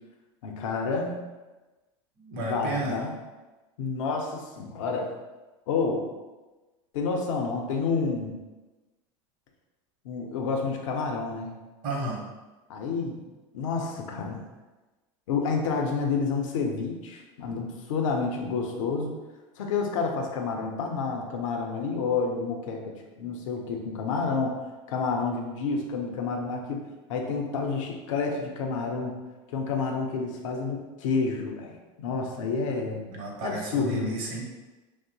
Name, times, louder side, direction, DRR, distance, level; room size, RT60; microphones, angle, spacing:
voice 1, 0.4-1.2 2.3-3.1 3.8-5.1 5.7-6.1 6.9-8.3 10.0-11.5 12.7-13.2 13.5-14.4 15.3-19.1 19.6-24.6 24.9-26.8 27.1-29.1 29.5-33.0 33.4-34.2, left 4 dB, 80° left, 2 dB, 0.5 m, -29 dB
voice 2, 2.2-3.0 11.8-12.2 33.1-34.4, right 2 dB, 55° right, -1 dB, 0.8 m, -32 dB
2.8 x 2.0 x 2.6 m, 1.2 s
hypercardioid pair, 95°, 16 cm